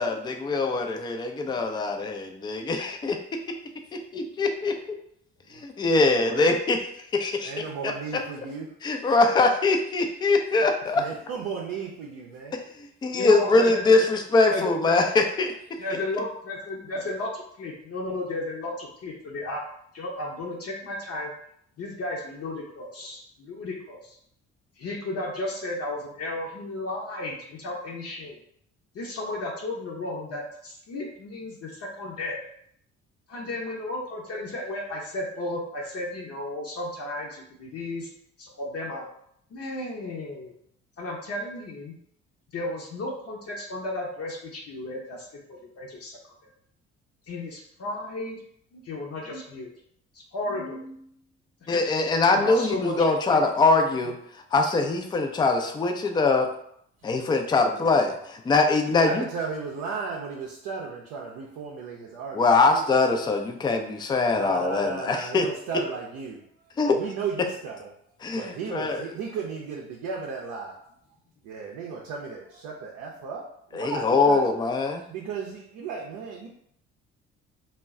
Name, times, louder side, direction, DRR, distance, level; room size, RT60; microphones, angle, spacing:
voice 1, 0.0-3.2 4.1-4.8 5.5-6.8 7.1-7.6 8.8-11.0 12.8-15.5 51.7-54.2 54.5-56.5 57.0-59.3 62.3-65.5 66.8-67.0 68.2-69.0 73.7-75.0, left 3 dB, 15° left, 4 dB, 0.3 m, -23 dB
voice 2, 7.4-8.7 10.9-12.6 57.0-57.1 57.7-58.2 59.0-62.8 64.3-66.4 66.9-67.9 68.3-70.9 71.4-74.5 75.1-76.5, right 5 dB, 60° right, -1 dB, 0.6 m, -35 dB
voice 3, 13.1-14.1 14.5-15.0 15.8-19.6 19.9-21.3 21.8-24.2 24.8-28.4 28.9-32.4 33.3-38.1 38.4-39.0 39.5-40.5 41.0-41.9 42.5-46.2 47.3-48.4 48.9-49.7 50.1-51.1 51.7-51.8 52.3-53.0, left 2 dB, 45° left, -2 dB, 0.7 m, -34 dB
2.2 x 2.1 x 3.5 m, 0.70 s
hypercardioid pair, 50°, 36 cm